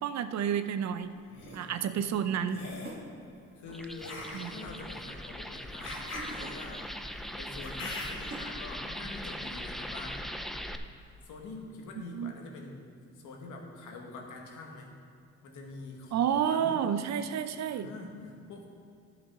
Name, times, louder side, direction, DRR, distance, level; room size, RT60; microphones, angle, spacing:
voice 1, 0.0-1.1 1.5-2.6 4.3-4.5 12.1-12.3 16.1-17.9, right 8 dB, 60° right, 10 dB, 0.6 m, -30 dB
sound 1, 0.7-0.8 2.8-3.9 5.9-6.7 8.1-8.7, right 2 dB, 30° right, 1.5 m, -45 dB
sound 2, 1.1-1.6 2.5-3.0 4.0-8.4, left 2 dB, 55° left, 2.5 m, -43 dB
voice 2, 1.6-2.2 3.6-6.8 7.4-10.2 11.2-12.9 13.1-14.9 15.4-16.8 17.7-18.7, left 3 dB, 75° left, 1 dB, 1.6 m, -45 dB
sound 3, 3.7-10.8, equal, ahead, 0.4 m, -40 dB
11.0 x 5.9 x 4.9 m, 2.5 s
cardioid pair, 90°, 30 cm